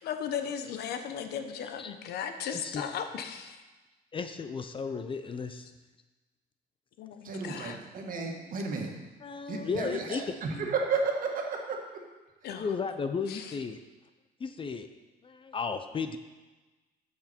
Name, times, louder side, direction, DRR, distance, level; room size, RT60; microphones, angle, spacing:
voice 1, 0.0-3.6 7.0-7.8 12.4-12.7 13.3-13.5, left 8 dB, 70° left, 7 dB, 0.9 m, -36 dB
voice 2, 2.5-2.9 4.1-5.7 8.1-8.3 9.2-10.2 10.5-10.7 12.5-13.8 14.4-14.9 15.2-16.2, left 5 dB, 30° left, 9 dB, 0.6 m, -34 dB
voice 3, 7.2-8.9 9.5-12.0, right 4 dB, 55° right, 1 dB, 1.8 m, -33 dB
13.0 x 6.0 x 4.4 m, 1.2 s
cardioid pair, 110°, 17 cm